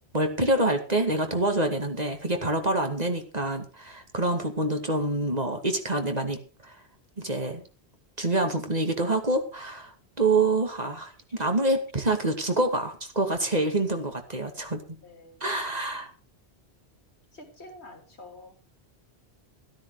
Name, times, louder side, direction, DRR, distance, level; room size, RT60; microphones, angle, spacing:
voice 1, 0.1-6.8 7.2-7.6 8.2-14.8 15.4-16.1, right 2 dB, 40° right, 2.4 m, -26 dB
voice 2, 15.0-15.4 15.8-16.0 17.3-18.6, left 2 dB, 85° left, 3.4 m, -48 dB
13.5 x 13.0 x 4.9 m
omnidirectional pair, 1.1 m